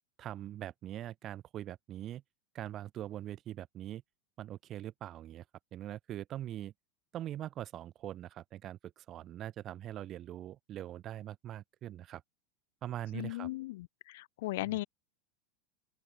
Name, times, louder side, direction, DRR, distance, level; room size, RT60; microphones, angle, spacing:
voice 1, 0.2-2.2 2.5-4.0 4.4-5.4 5.7-6.7 7.1-12.2 12.8-13.5 14.6-14.8, right 12 dB, 40° right, 4.2 m, -42 dB
voice 2, 13.1-14.8, left 18 dB, 70° left, 1.4 m, -37 dB
open air
supercardioid pair, 120°, 0 cm